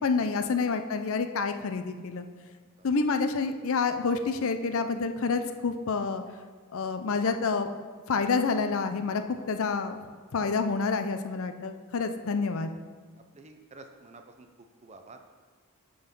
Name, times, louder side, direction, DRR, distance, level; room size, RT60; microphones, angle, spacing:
voice 1, 0.0-2.3 2.8-6.2 6.7-7.7 8.1-10.0 10.3-12.7, left 4 dB, 65° left, 8 dB, 0.5 m, -28 dB
voice 2, 13.3-14.5 14.8-15.3, right 3 dB, 30° right, 6 dB, 0.6 m, -49 dB
9.8 x 3.9 x 5.3 m, 1.5 s
head